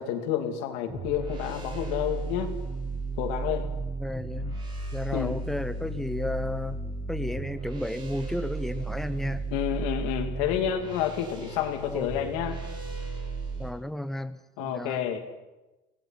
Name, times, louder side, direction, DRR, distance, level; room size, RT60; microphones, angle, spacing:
voice 1, 0.0-2.5 3.2-3.7 5.1-5.4 9.5-12.6 14.6-15.2, left 10 dB, 80° left, 5 dB, 2.8 m, -29 dB
sound 1, 0.9-13.7, right 3 dB, 30° right, 4.7 m, -34 dB
voice 2, 4.0-4.6 4.9-6.8 7.1-9.4 11.9-12.2 13.6-15.0, left 1 dB, ahead, 12 dB, 0.7 m, -33 dB
24.5 x 18.0 x 5.9 m, 1.1 s
cardioid pair, 165°, 16 cm